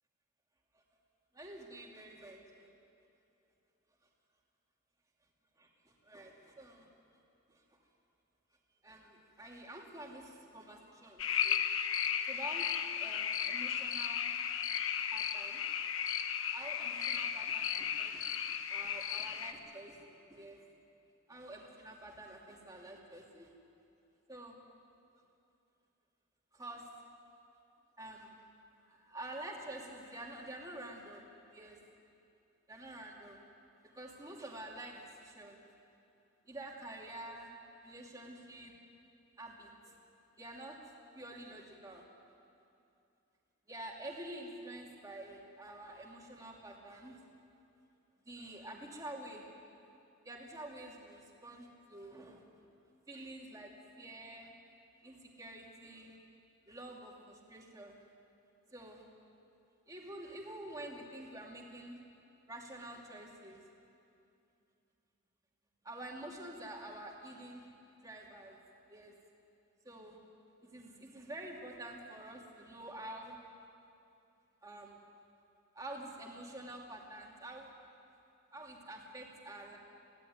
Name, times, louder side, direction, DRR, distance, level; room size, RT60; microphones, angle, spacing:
voice 1, 1.3-2.7 5.6-7.2 7.5-7.6 8.8-11.6 12.3-14.3 15.1-15.6 16.5-18.2 18.7-20.6 21.3-23.5 24.3-24.6 26.5-26.9 28.0-28.3 28.9-31.2 31.5-31.8 32.7-33.4 33.9-35.6 36.5-37.5 37.8-38.7 39.4-40.0 40.4-40.8 41.1-42.0 43.7-47.2 48.3-49.5 50.2-52.5 53.1-54.5 55.0-56.2 56.7-57.9 58.7-59.1 59.9-62.0 62.5-63.6 65.8-67.7 68.0-68.6 68.9-69.1 69.8-70.2 70.6-73.4 74.6-75.0 75.7-77.7 78.5-79.8, right 1 dB, 15° right, -1 dB, 2.6 m, -48 dB
sound 1, 11.2-19.5, left 8 dB, 70° left, 1.0 m, -35 dB
23.0 x 16.5 x 9.4 m, 2.6 s
head